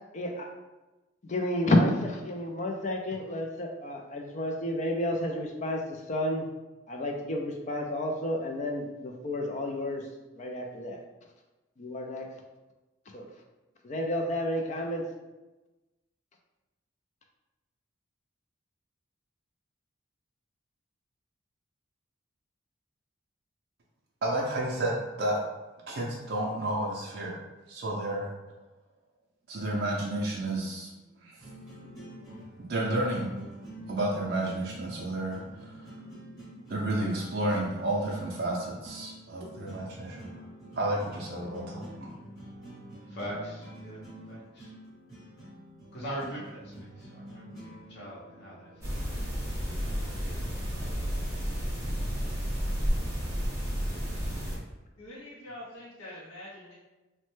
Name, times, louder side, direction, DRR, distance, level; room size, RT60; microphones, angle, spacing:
voice 1, 0.1-0.5 1.2-6.5 6.9-10.1 10.4-11.0 11.8-12.3 13.1-13.3 13.8-15.0, left 1 dB, 35° left, 2 dB, 0.3 m, -30 dB
voice 2, 24.2-25.4 25.9-27.4 27.7-28.3 29.5-30.9 31.2-31.4 32.7-33.4 33.9-35.9 36.7-40.3 40.8-42.1, right 1 dB, 50° right, -3 dB, 0.4 m, -31 dB
sound 1, 31.0-48.8, right 1 dB, 20° left, 0.9 m, -47 dB
voice 3, 43.1-44.7 45.9-49.0 49.9-50.4, equal, 50° left, -7 dB, 0.8 m, -41 dB
sound 2, 48.8-54.6, equal, 10° right, 0.7 m, -31 dB
voice 4, 55.0-56.7, left 1 dB, 85° left, -7 dB, 0.7 m, -45 dB
3.1 x 2.1 x 3.1 m, 1.1 s
head